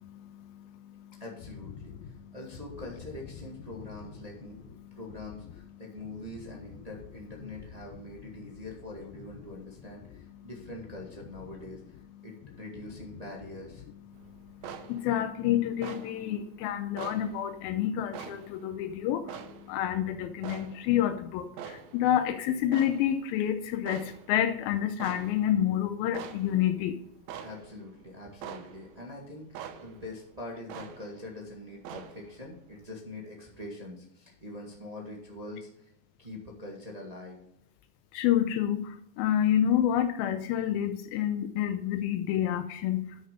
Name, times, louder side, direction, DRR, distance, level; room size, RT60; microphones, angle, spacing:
voice 1, 1.2-13.8 27.4-35.9 36.2-37.4, left 2 dB, 35° right, -2 dB, 0.6 m, -44 dB
sound 1, 14.1-21.3 21.6-32.8, right 8 dB, 75° right, 1.7 m, -46 dB
voice 2, 14.9-19.2 19.7-26.9 38.1-38.9 39.2-43.0, left 10 dB, 90° left, 7 dB, 2.6 m, -28 dB
10.5 x 6.5 x 5.2 m, 0.74 s
omnidirectional pair, 4.2 m